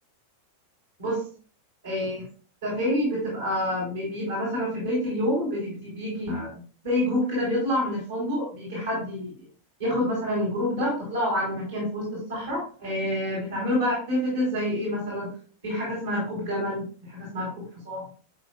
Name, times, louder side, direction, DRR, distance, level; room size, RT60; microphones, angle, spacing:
voice 1, 1.8-2.2 2.6-9.3 9.8-15.3 15.6-18.0, left 1 dB, 70° right, -4 dB, 3.7 m, -28 dB
10.5 x 4.9 x 2.4 m, 0.41 s
figure-of-eight pair, 90°, 0 cm